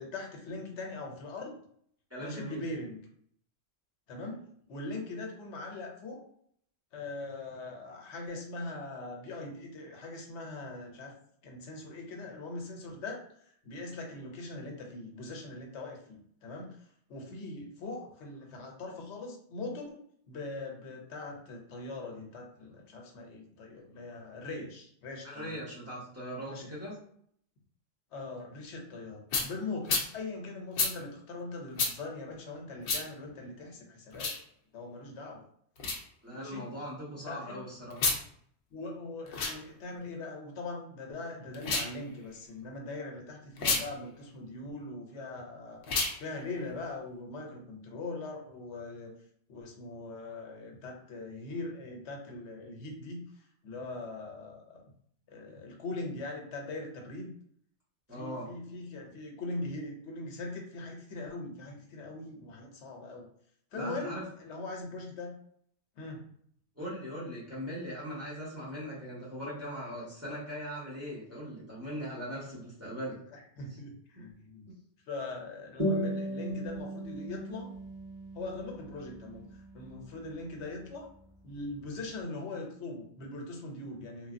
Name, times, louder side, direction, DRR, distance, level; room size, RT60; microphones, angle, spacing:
voice 1, 0.0-1.5 2.2-3.0 4.1-6.2 6.9-11.1 11.4-13.2 13.6-16.8 17.1-20.0 20.3-25.6 26.5-26.6 28.1-34.3 34.7-35.4 36.3-36.7 37.3-37.7 38.7-45.8 46.2-49.1 49.5-53.2 53.6-54.8 55.3-57.3 58.1-63.3 63.7-65.3 66.0-66.2 73.3-74.7 75.1-77.7 78.3-79.5 79.7-81.1 81.4-84.3, left 2 dB, 85° left, 1 dB, 1.0 m, -41 dB
voice 2, 2.1-2.6 25.2-26.9 36.2-38.0 58.1-58.5 63.7-64.2 66.7-73.2 74.2-74.3 74.7-74.8, equal, 15° right, -7 dB, 1.0 m, -40 dB
sound 1, 29.3-29.5 29.9-30.1 30.8-30.9 31.8-31.9 32.8-33.0 34.1-34.4 35.8-36.0 37.9-38.2 39.3-39.6 41.5-41.9 43.6-43.8 45.8-46.2, left 4 dB, 60° left, 0.7 m, -29 dB
sound 2, 75.8-80.8, right 1 dB, 45° right, 1.4 m, -37 dB
3.2 x 2.2 x 2.5 m, 0.65 s
omnidirectional pair, 1.2 m